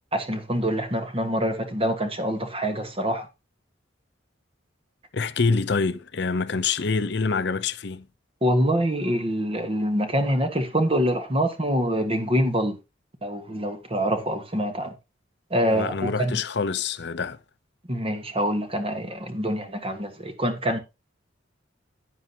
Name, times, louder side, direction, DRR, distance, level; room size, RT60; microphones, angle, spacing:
voice 1, 0.1-3.3 8.4-12.8 13.2-14.9 15.5-16.4 17.9-20.8, equal, 30° right, 1.6 m, -25 dB
voice 2, 5.1-8.1 15.7-17.4, left 4 dB, 60° left, 0.7 m, -26 dB
11.0 x 9.6 x 2.9 m
head